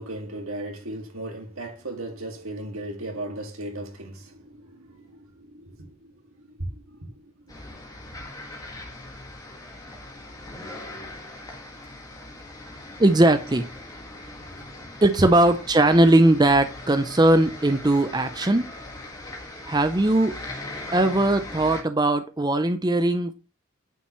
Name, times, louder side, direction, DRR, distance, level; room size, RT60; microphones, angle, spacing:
voice 1, 0.0-7.2, right 1 dB, 70° right, 2.1 m, -37 dB
sound 1, 7.5-21.8, left 2 dB, 15° left, 1.7 m, -40 dB
voice 2, 13.0-13.7 15.0-18.7 19.6-20.4 20.9-23.3, right 1 dB, 20° right, 0.5 m, -19 dB
9.1 x 6.9 x 3.1 m
head